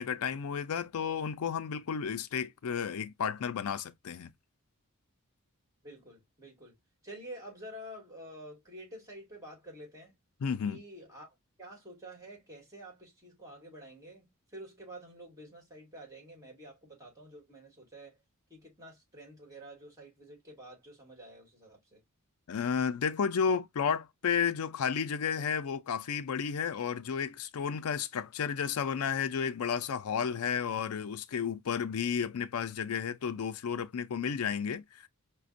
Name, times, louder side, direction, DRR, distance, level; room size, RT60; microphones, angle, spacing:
voice 1, 0.0-4.3 10.4-10.8 22.5-35.1, left 7 dB, 75° left, 0.4 m, -32 dB
voice 2, 5.8-6.8 7.0-10.1 10.6-18.2 18.5-22.0, right 1 dB, 15° right, 2.0 m, -49 dB
4.9 x 2.2 x 2.5 m
head